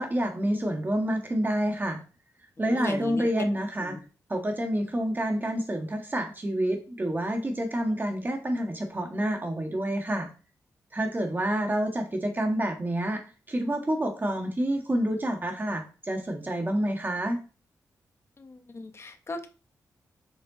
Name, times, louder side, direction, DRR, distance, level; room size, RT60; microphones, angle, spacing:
voice 1, 0.0-2.0 2.6-4.0 4.3-10.3 10.9-13.2 13.5-17.4, right 1 dB, 30° right, 3 dB, 1.5 m, -28 dB
voice 2, 2.7-3.3 3.8-4.0 18.4-19.5, left 3 dB, 40° left, 7 dB, 1.2 m, -37 dB
6.6 x 4.4 x 4.0 m, 0.35 s
cardioid pair, 65°, 7 cm